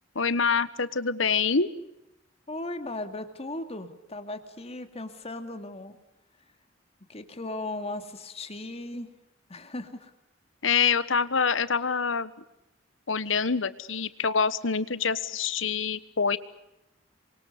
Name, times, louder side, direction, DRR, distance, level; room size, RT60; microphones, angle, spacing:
voice 1, 0.1-1.7 10.6-12.3 13.1-16.4, left 5 dB, 85° left, 15 dB, 1.3 m, -26 dB
voice 2, 2.5-6.0 7.1-9.1 9.5-10.1, left 2 dB, 35° left, 8 dB, 2.3 m, -37 dB
28.0 x 24.0 x 6.8 m, 0.91 s
head